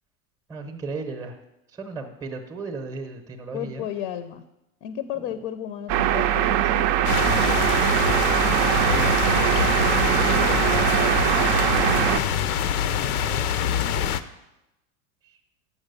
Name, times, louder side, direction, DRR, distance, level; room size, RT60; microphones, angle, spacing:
voice 1, 0.5-1.4 1.7-3.8 5.2-5.3 8.4-9.2 13.0-13.5, right 3 dB, 10° right, 5 dB, 0.7 m, -36 dB
voice 2, 3.5-4.4 4.8-6.9 10.5-12.3, left 10 dB, 45° left, 11 dB, 0.6 m, -34 dB
sound 1, 5.9-12.2, right 11 dB, 40° right, 0.5 m, -21 dB
sound 2, 7.0-14.2, left 9 dB, 85° left, 0.7 m, -25 dB
7.2 x 6.3 x 6.7 m, 0.91 s
supercardioid pair, 140°, 43 cm